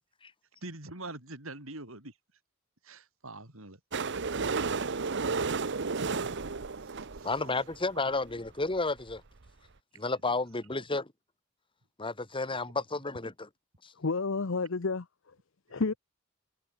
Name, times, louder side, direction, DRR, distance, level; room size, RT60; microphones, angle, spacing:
voice 1, 0.6-2.1 2.8-3.8 6.8-7.3 9.9-10.0 15.7-15.8, right 2 dB, 75° right, 6.2 m, -45 dB
sound 1, 3.9-7.8 8.5-8.6 8.7-8.8 9.0-9.1 9.5-9.6, right 4 dB, 60° right, 1.0 m, -32 dB
voice 2, 7.2-9.2 9.9-11.1 12.0-13.5 13.8-13.9, left 3 dB, 25° left, 2.1 m, -32 dB
voice 3, 13.9-15.4 15.7-15.9, left 4 dB, 65° left, 0.8 m, -31 dB
head